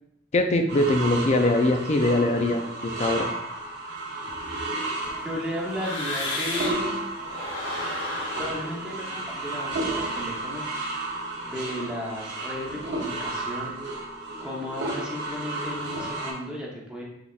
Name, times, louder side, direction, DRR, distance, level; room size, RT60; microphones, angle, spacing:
voice 1, 0.3-3.3, left 2 dB, 35° left, 5 dB, 0.4 m, -22 dB
sound 1, 0.7-16.3, right 2 dB, 60° right, 0.8 m, -33 dB
sound 2, 4.3-6.9 7.2-10.3, left 2 dB, 75° left, 1.0 m, -35 dB
voice 2, 5.2-7.0 8.3-10.7 11.4-13.8 14.4-17.0, equal, 5° right, -4 dB, 0.8 m, -34 dB
4.9 x 3.4 x 2.4 m, 0.80 s
head